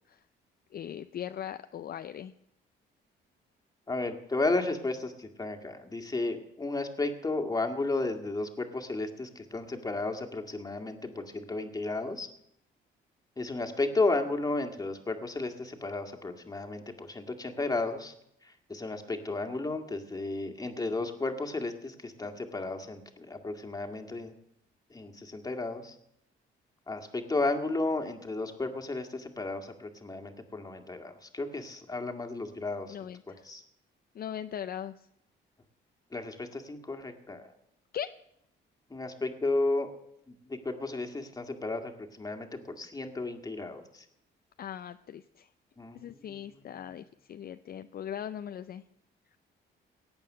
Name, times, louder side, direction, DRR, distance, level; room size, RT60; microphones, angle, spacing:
voice 1, 0.7-2.3 32.9-33.4 34.1-35.1 37.9-38.1 44.6-45.5 45.9-48.8, left 9 dB, 50° left, 10 dB, 0.5 m, -39 dB
voice 2, 3.9-12.3 13.4-18.1 18.7-24.3 24.9-25.9 26.9-32.9 33.5-33.6 36.1-37.4 38.9-39.9 40.5-43.8 45.8-46.3, left 2 dB, 20° left, 5 dB, 2.0 m, -33 dB
17.5 x 8.9 x 6.7 m, 0.75 s
cardioid pair, 90°, 20 cm